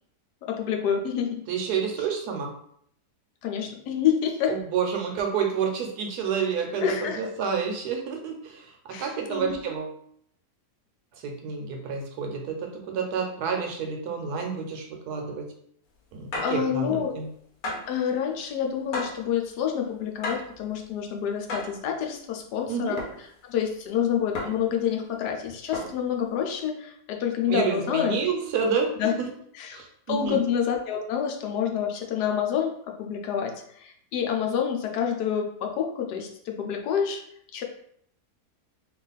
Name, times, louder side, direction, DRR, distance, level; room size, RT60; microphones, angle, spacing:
voice 1, 0.5-1.4 3.4-4.5 6.8-7.2 8.9-9.6 16.4-17.1 17.9-28.1 29.0-29.1 29.6-29.8 30.1-32.7 33.0-37.2 37.5-37.6, left 8 dB, 85° left, 2 dB, 1.2 m, -28 dB
voice 2, 1.5-2.5 4.5-6.8 7.1-8.7 9.0-9.9 11.2-15.4 16.1-17.3 22.7-23.0 27.5-28.9 29.2-29.3 29.7-30.4, right 6 dB, 75° right, 3 dB, 1.2 m, -29 dB
sound 1, 16.3-16.6 17.6-18.0 18.9-19.3 20.2-20.6 21.5-21.8 23.0-23.2 24.3-24.7 25.7-26.1, left 2 dB, 65° left, 1.1 m, -33 dB
3.0 x 2.4 x 3.9 m, 0.66 s
omnidirectional pair, 1.7 m